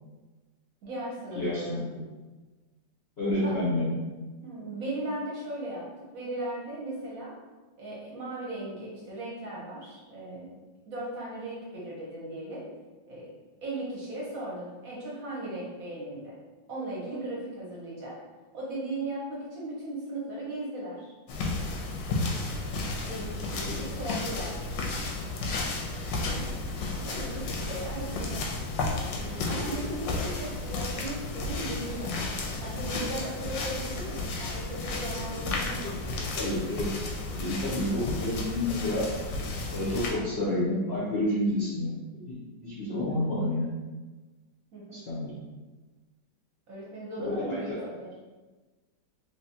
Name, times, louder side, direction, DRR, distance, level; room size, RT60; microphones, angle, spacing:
voice 1, 0.8-1.8 3.4-3.6 4.4-5.8 6.1-7.3 7.8-10.5 10.9-12.6 13.1-13.3 13.6-16.4 16.7-18.2 18.5-21.1 23.0-24.9 27.0-28.5 29.1-36.2 44.7-45.1 46.7-48.3, right 1 dB, 60° right, -5 dB, 1.0 m, -37 dB
voice 2, 1.3-2.0 3.2-3.9 26.3-26.4 35.8-35.9 36.3-37.0 37.4-39.1 39.7-43.7 44.9-45.4 47.2-47.6, left 1 dB, 60° left, -8 dB, 0.6 m, -29 dB
sound 1, 21.3-40.1, left 3 dB, 80° left, 1.3 m, -33 dB
3.4 x 3.0 x 2.7 m, 1.3 s
omnidirectional pair, 2.0 m